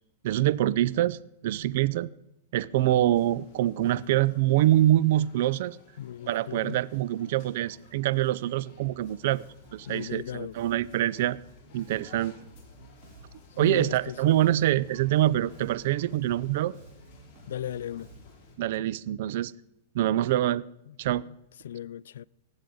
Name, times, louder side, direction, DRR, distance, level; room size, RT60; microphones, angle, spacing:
voice 1, 0.2-2.1 2.5-5.8 6.3-9.4 9.7-11.4 11.7-12.3 13.6-16.7 18.6-19.5 19.9-20.6 21.0-21.2, right 13 dB, 60° right, 0.4 m, -25 dB
sound 1, 2.7-18.6, left 3 dB, 35° left, 4.7 m, -56 dB
voice 2, 6.0-6.8 9.9-10.5 13.6-14.4 17.5-18.1 20.9-21.0 21.6-22.2, left 11 dB, 80° left, 0.3 m, -36 dB
Bass guitar, 8.7-18.6, right 2 dB, 40° right, 3.4 m, -53 dB
19.5 x 7.9 x 3.9 m
hypercardioid pair, 145°, 0 cm